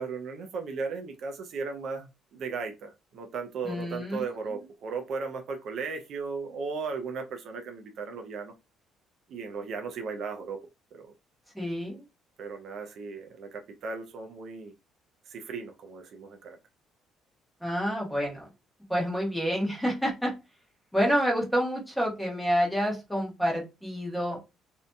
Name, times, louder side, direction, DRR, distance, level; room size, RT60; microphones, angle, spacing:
voice 1, 0.0-8.5 9.3-10.6 10.9-11.1 12.4-14.7 15.3-16.6, right 4 dB, 60° right, 5 dB, 0.4 m, -36 dB
voice 2, 3.6-4.2 11.5-12.0 17.6-18.5 18.9-20.3 20.9-24.4, equal, 5° left, -2 dB, 1.0 m, -28 dB
2.6 x 2.5 x 2.2 m, 0.26 s
cardioid pair, 115°, 0 cm